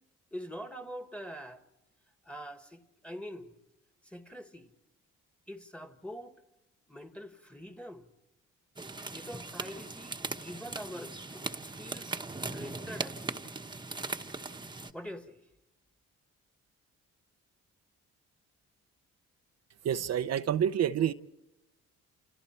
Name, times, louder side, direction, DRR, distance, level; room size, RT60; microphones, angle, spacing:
voice 1, 0.3-1.6 2.2-3.5 4.0-4.7 5.5-6.3 6.9-8.1 9.1-12.1 12.5-13.5 14.9-15.4, equal, 5° left, 1.7 m, -44 dB
sound 1, 8.8-14.9, right 3 dB, 15° right, 1.2 m, -39 dB
voice 2, 19.8-21.1, right 9 dB, 60° right, 0.7 m, -28 dB
29.0 x 29.0 x 4.5 m
cardioid pair, 90°, 30 cm